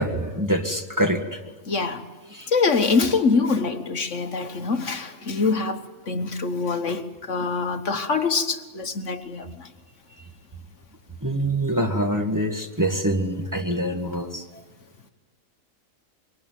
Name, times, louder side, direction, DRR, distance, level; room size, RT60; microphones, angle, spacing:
voice 1, 0.0-1.4 2.3-2.5 11.2-14.4, right 1 dB, 15° right, 3 dB, 1.9 m, -25 dB
voice 2, 1.7-2.0 2.5-9.7, left 4 dB, 60° left, 8 dB, 1.6 m, -24 dB
26.0 x 23.0 x 9.3 m, 1.2 s
omnidirectional pair, 1.4 m